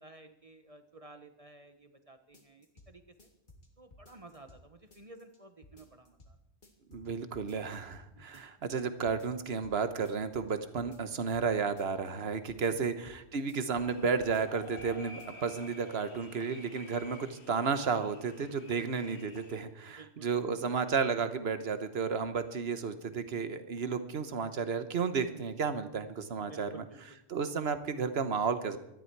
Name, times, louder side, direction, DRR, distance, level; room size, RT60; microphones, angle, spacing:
voice 1, 0.0-3.0 3.8-6.4 8.1-8.5 16.6-16.7 18.8-18.9 19.1-19.2 19.9-20.4 23.1-23.7 25.3-25.5 26.4-27.2, right 3 dB, 35° right, 8 dB, 1.0 m, -54 dB
sound 1, 2.3-2.9 3.2-4.6 4.9-5.4 5.6-6.3 6.6-7.1 7.3-8.1 8.3-8.8 9.1-9.8 10.1-11.5 11.8-12.2 12.5-13.2 13.5-13.9 14.2-14.9 15.2-15.3, left 1 dB, 45° left, 2.5 m, -56 dB
voice 2, 6.9-26.8 27.3-28.8, right 5 dB, 60° right, 10 dB, 1.3 m, -32 dB
sound 2, 13.8-19.6, left 3 dB, 65° left, 1.8 m, -52 dB
18.5 x 13.0 x 4.7 m, 0.84 s
omnidirectional pair, 1.2 m